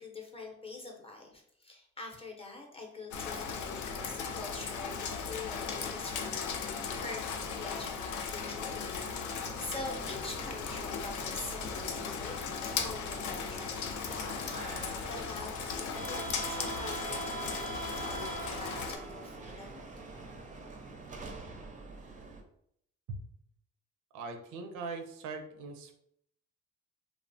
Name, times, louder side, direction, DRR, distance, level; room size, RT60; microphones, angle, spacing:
voice 1, 0.0-6.8 7.0-12.4 12.6-19.8, left 3 dB, 20° left, 0 dB, 0.6 m, -45 dB
Rain, 3.1-19.0, left 5 dB, 75° left, 0.5 m, -37 dB
sound 1, 9.3-22.4, right 3 dB, 25° right, 0.4 m, -44 dB
voice 2, 24.1-25.9, right 3 dB, 85° right, 5 dB, 0.5 m, -41 dB
2.9 x 2.0 x 2.6 m, 0.71 s
cardioid pair, 90°, 30 cm